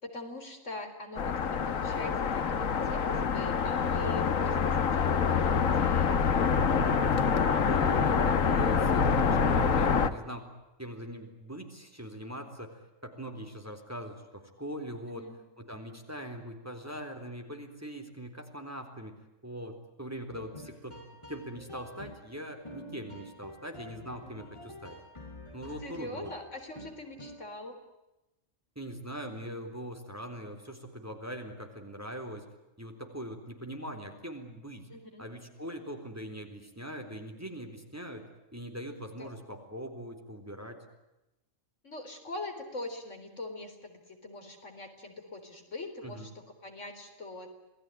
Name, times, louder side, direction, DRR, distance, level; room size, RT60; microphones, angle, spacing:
voice 1, 0.0-6.1 15.1-15.4 25.8-27.8 34.9-35.3 39.2-39.3 41.8-47.5, left 2 dB, 65° left, 5 dB, 4.4 m, -42 dB
sound 1, 1.2-10.1, left 6 dB, 90° left, 1.6 m, -26 dB
voice 2, 7.7-10.5 10.8-15.3 15.6-19.1 19.4-21.0 21.3-25.0 25.5-26.3 28.8-32.4 32.8-34.9 35.2-38.3 38.5-40.8 46.0-46.3, equal, 10° right, 5 dB, 3.7 m, -41 dB
sound 2, 20.3-27.6, left 1 dB, 20° left, 6.6 m, -48 dB
28.0 x 19.5 x 9.3 m, 0.97 s
omnidirectional pair, 1.4 m